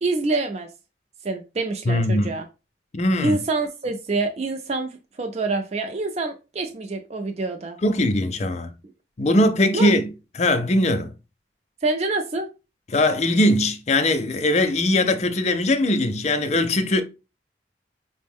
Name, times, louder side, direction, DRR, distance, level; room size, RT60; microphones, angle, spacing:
voice 1, 0.0-0.7 1.2-2.4 3.2-4.9 5.2-7.8 9.7-9.9 11.8-12.5, right 3 dB, 35° right, 0.4 m, -26 dB
voice 2, 1.9-2.3 2.9-3.4 7.8-8.7 9.2-10.1 10.4-11.1 12.9-17.0, left 1 dB, 35° left, 0.4 m, -20 dB
5.1 x 2.1 x 3.5 m
head